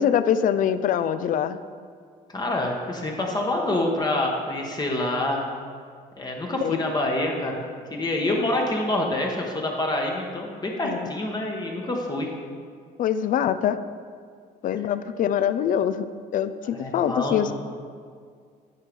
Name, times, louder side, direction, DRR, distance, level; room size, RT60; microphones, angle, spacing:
voice 1, 0.0-1.6 6.6-6.8 10.8-11.1 13.0-13.8 14.6-16.1 16.3-17.5, left 9 dB, 50° left, 12 dB, 0.4 m, -24 dB
voice 2, 2.3-5.5 6.2-7.6 7.9-12.3 16.7-17.5, left 1 dB, 25° left, 0 dB, 1.1 m, -26 dB
11.0 x 4.7 x 5.3 m, 2.1 s
cardioid pair, 110°, 17 cm